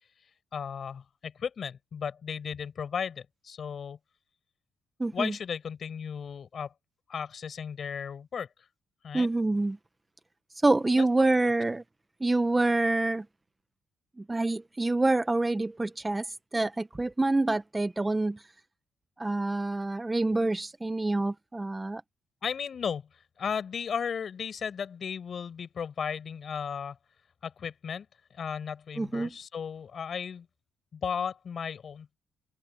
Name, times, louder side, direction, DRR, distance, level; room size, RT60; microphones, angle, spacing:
voice 1, 0.5-4.0 5.1-6.7 7.1-8.5 9.0-9.3 11.0-11.3 22.4-23.0 23.4-27.0 27.4-28.1 28.3-30.5 30.9-32.1, left 7 dB, 50° left, 6.7 m, -35 dB
voice 2, 5.0-5.3 9.1-9.8 10.6-11.8 12.2-13.3 14.2-18.4 19.2-22.0 29.0-29.3, right 2 dB, 15° right, 1.1 m, -27 dB
cardioid pair, 90°, 0 cm